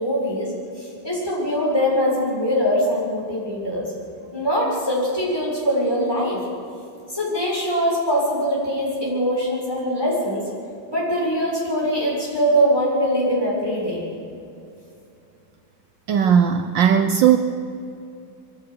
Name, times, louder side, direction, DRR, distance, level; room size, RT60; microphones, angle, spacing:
voice 1, 0.0-3.9 4.3-6.4 7.1-10.4 10.9-14.0, equal, 10° left, -5 dB, 7.1 m, -22 dB
voice 2, 16.1-17.4, right 8 dB, 70° right, 8 dB, 1.4 m, -17 dB
23.5 x 16.0 x 6.9 m, 2.6 s
omnidirectional pair, 2.2 m